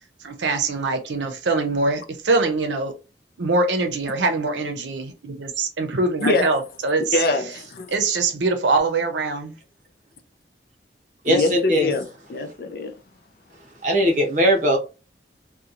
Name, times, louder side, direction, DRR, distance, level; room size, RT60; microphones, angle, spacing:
voice 1, 0.2-2.9 3.4-7.2 7.9-9.5, right 3 dB, 90° right, 0.6 m, -23 dB
voice 2, 7.1-7.9 11.3-12.9, left 3 dB, 55° left, 0.4 m, -24 dB
voice 3, 11.2-11.9 13.8-14.8, equal, 45° right, 0.7 m, -19 dB
2.9 x 2.2 x 2.4 m
head